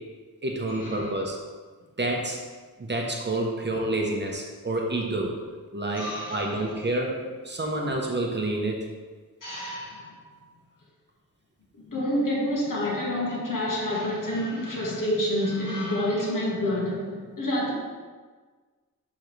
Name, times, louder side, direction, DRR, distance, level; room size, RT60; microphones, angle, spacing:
voice 1, 0.4-1.4 2.0-2.4 2.8-5.3 5.7-7.1 7.4-8.8, right 2 dB, 30° right, 0.9 m, -28 dB
voice 2, 5.9-6.7 9.4-10.2 11.8-17.7, left 1 dB, 65° left, 1.9 m, -28 dB
10.5 x 3.6 x 3.3 m
wide cardioid pair, 105°, 35 cm